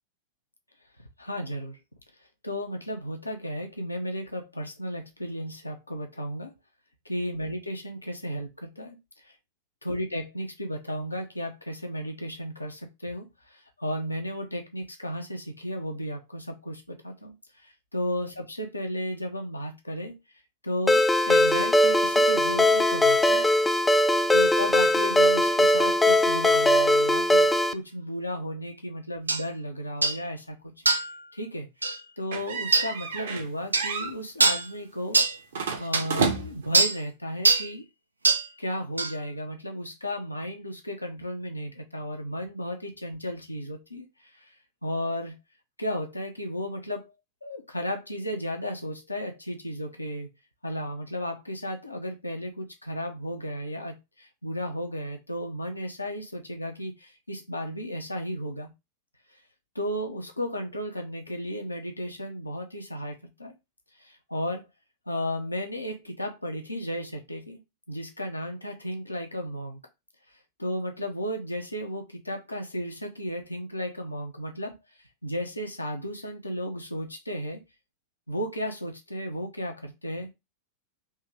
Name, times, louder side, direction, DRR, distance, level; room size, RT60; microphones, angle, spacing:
voice 1, 1.2-1.8 2.4-6.5 7.0-9.0 9.2-9.3 9.8-17.4 17.6-20.2 20.6-23.5 24.3-30.7 31.3-31.7 32.2-35.2 35.8-37.8 38.6-44.1 44.4-44.5 44.8-45.4 45.8-47.1 47.4-50.3 50.6-58.7 59.7-63.5 64.0-64.7 65.1-67.6 67.9-69.8 70.6-74.8 75.2-77.6 78.3-80.3, equal, 85° left, 0.8 m, -34 dB
Ringtone, 20.9-27.7, left 1 dB, 10° left, 0.3 m, -20 dB
sound 1, 29.3-29.4 30.0-30.2 30.9-31.1 31.8-32.0 32.7-32.9 33.7-33.9 34.4-34.7 35.1-35.4 35.9-36.0 36.7-37.0 37.4-37.7 38.2-38.5 39.0-39.1, right 3 dB, 80° right, 0.4 m, -22 dB
sound 2, 32.3-33.5 33.8-34.1 35.5-36.7, right 5 dB, 60° right, 0.9 m, -30 dB
3.5 x 2.9 x 3.2 m
figure-of-eight pair, 90°, 0 cm